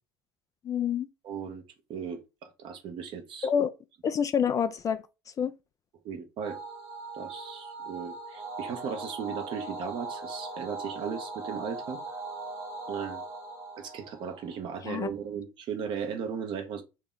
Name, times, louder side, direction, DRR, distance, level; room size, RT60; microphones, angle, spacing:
voice 1, 0.6-1.1 3.4-3.7 4.0-5.0 5.4-5.5 14.8-15.1, left 7 dB, 35° left, 0.4 m, -27 dB
voice 2, 1.2-1.6 1.9-3.5 6.0-6.6 7.1-12.0 12.9-13.2 13.8-16.8, right 7 dB, 55° right, 1.0 m, -36 dB
sound 1, 6.4-15.0, right 3 dB, 35° right, 1.5 m, -40 dB
3.0 x 2.9 x 3.8 m
hypercardioid pair, 65°, 10 cm